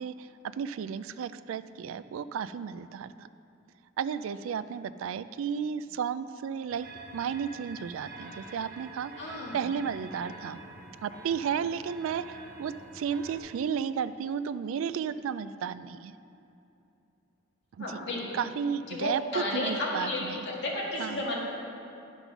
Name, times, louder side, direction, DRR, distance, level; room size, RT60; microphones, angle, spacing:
voice 1, 0.0-3.3 4.0-6.9 7.1-9.1 9.5-10.6 11.0-16.1 17.8-18.0 18.3-20.4 21.0-21.3, right 7 dB, 75° right, 14 dB, 0.3 m, -33 dB
sound 1, 6.7-13.4, right 3 dB, 50° right, 0.9 m, -47 dB
voice 2, 9.2-9.7 17.8-18.4 18.9-21.4, left 1 dB, 60° left, -4 dB, 1.9 m, -33 dB
10.5 x 5.3 x 6.0 m, 2.8 s
head